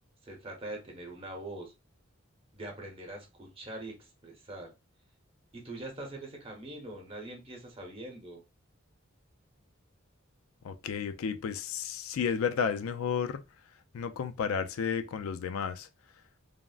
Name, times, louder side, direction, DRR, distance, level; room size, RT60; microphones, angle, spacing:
voice 1, 0.2-1.7 2.5-4.7 5.5-8.4, right 1 dB, 25° right, 0.8 m, -43 dB
voice 2, 10.6-13.4 13.9-15.9, left 6 dB, 85° left, 0.4 m, -32 dB
3.5 x 2.0 x 2.3 m
head